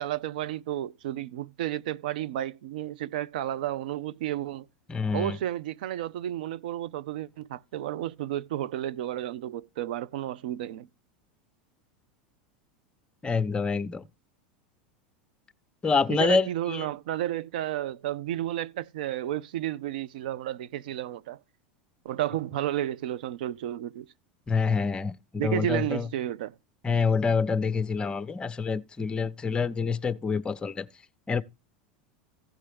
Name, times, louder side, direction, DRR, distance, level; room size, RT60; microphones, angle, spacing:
voice 1, 0.0-4.7 5.1-10.9 16.1-21.4 22.0-24.1 25.4-26.5, right 12 dB, 75° right, 0.6 m, -32 dB
voice 2, 4.9-5.4 13.2-14.1 15.8-16.9 24.5-25.1 25.4-26.1 26.8-30.9 31.3-31.4, left 5 dB, 20° left, 0.8 m, -27 dB
16.0 x 5.5 x 3.4 m
hypercardioid pair, 95°, 5 cm